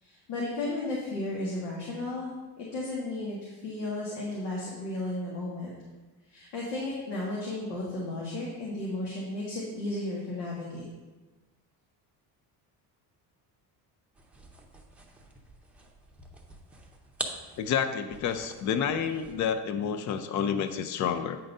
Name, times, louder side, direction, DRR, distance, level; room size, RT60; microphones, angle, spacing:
voice 1, 0.0-5.7 6.3-10.8, left 2 dB, 90° left, -5 dB, 1.8 m, -34 dB
sound 1, 14.1-19.6, right 2 dB, 5° right, 0.7 m, -44 dB
voice 2, 17.6-21.4, left 7 dB, 45° left, 9 dB, 0.5 m, -29 dB
8.8 x 3.9 x 5.4 m, 1.2 s
cardioid pair, 140°, 40 cm